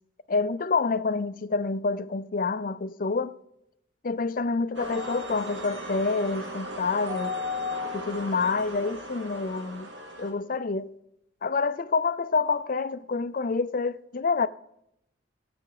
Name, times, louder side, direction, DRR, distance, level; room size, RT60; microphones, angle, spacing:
voice 1, 0.3-3.3 4.0-7.4 7.9-9.9 10.2-10.9 11.4-14.5, left 4 dB, 45° left, 0.5 m, -27 dB
sound 1, 4.7-10.3, left 2 dB, 75° right, 2.1 m, -36 dB
19.5 x 7.9 x 4.8 m
head